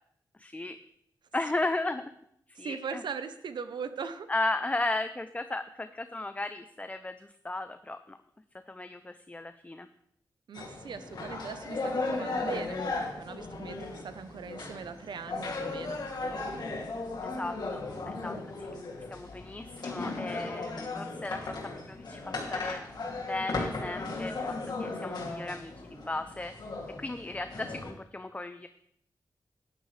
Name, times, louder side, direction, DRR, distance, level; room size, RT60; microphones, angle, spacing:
voice 1, 0.4-0.8 1.3-2.1 2.6-3.0 4.3-8.2 8.7-9.9 17.4-18.4 19.1-21.5 21.9-22.8 23.2-26.5 27.0-28.7, left 2 dB, 20° left, 10 dB, 0.5 m, -35 dB
voice 2, 2.6-4.3 10.5-16.0, right 6 dB, 80° right, 11 dB, 0.8 m, -40 dB
sound 1, 10.5-27.9, left 3 dB, 65° left, 2.6 m, -36 dB
13.0 x 10.0 x 3.3 m, 0.72 s
cardioid pair, 75°, 8 cm